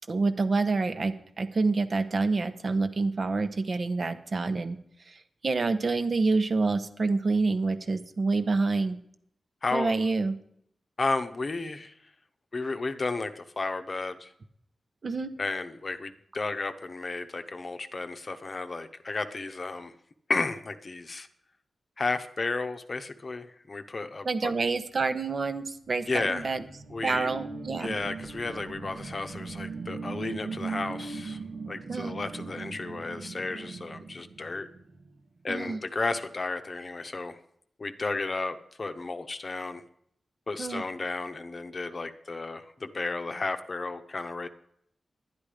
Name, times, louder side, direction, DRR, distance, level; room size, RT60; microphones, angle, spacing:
voice 1, 0.1-4.8 5.4-9.0 9.7-10.3 15.0-15.3 24.2-26.6 27.0-27.9 31.9-32.1 35.5-35.8 40.6-40.8, right 3 dB, 50° right, 10 dB, 1.0 m, -27 dB
voice 2, 9.6-9.9 11.0-12.0 12.5-14.3 15.4-19.9 20.3-21.3 22.0-24.5 26.1-26.6 26.9-27.3 27.8-31.4 31.7-34.7 35.4-37.4 37.8-39.8 40.5-44.5, left 3 dB, 40° left, 9 dB, 0.8 m, -33 dB
sound 1, 25.8-35.1, right 4 dB, 75° right, 1.2 m, -39 dB
11.0 x 10.5 x 5.0 m, 0.69 s
wide cardioid pair, 100°, 0 cm